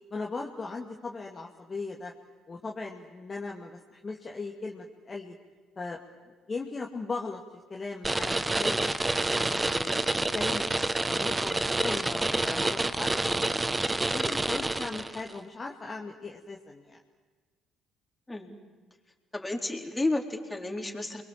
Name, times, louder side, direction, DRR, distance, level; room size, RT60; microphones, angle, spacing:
voice 1, 0.1-2.1 2.5-5.3 5.8-6.0 6.2-7.4 7.7-8.9 9.3-13.5 14.0-17.0, left 3 dB, 30° left, 0 dB, 2.3 m, -38 dB
sound 1, 8.0-15.3, right 2 dB, 20° right, 1.4 m, -28 dB
voice 2, 19.3-21.2, left 2 dB, 15° left, 1 dB, 4.2 m, -31 dB
29.0 x 22.5 x 7.6 m, 1.4 s
hypercardioid pair, 50°, 0 cm